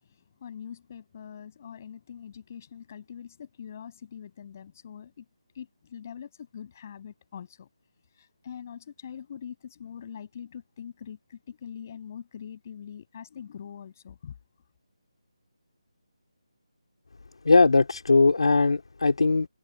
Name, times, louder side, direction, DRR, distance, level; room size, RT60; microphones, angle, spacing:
voice 1, 0.0-5.2 5.5-7.7 8.2-14.3, left 8 dB, 25° left, 8.0 m, -43 dB
voice 2, 17.5-19.5, left 3 dB, 70° left, 3.6 m, -20 dB
figure-of-eight pair, 175°, 3 cm